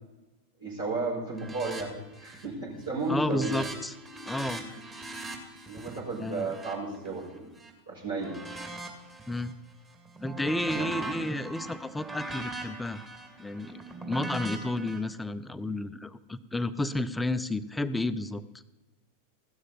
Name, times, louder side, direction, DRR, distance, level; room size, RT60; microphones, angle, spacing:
voice 1, 0.6-3.5 4.6-4.8 5.7-7.3 7.9-8.4 10.7-10.9, right 3 dB, 65° right, -7 dB, 5.6 m, -33 dB
sound 1, 1.4-1.8 2.1-2.6 2.9-7.7 8.2-9.5 9.9-15.0, right 2 dB, 20° right, 2.4 m, -40 dB
voice 2, 3.1-3.9 4.3-4.6 6.2-6.5 9.3-9.5 10.2-13.0 13.4-18.4, left 2 dB, 5° left, 12 dB, 0.6 m, -31 dB
15.5 x 12.5 x 4.2 m, 1.0 s
figure-of-eight pair, 90°, 0 cm